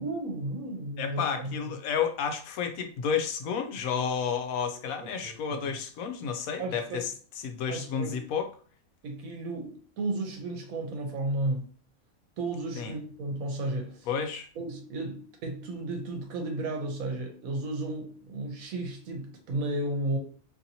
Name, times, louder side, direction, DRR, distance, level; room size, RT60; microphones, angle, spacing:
voice 1, 0.0-1.5 5.2-5.6 6.6-7.0 7.7-8.2 9.0-11.6 12.4-14.1 14.6-20.2, right 2 dB, 80° right, 1.2 m, -33 dB
voice 2, 1.0-7.1 7.4-8.5 12.8-12.9 14.1-14.5, left 7 dB, 80° left, 1.0 m, -31 dB
2.9 x 2.7 x 2.7 m
omnidirectional pair, 1.5 m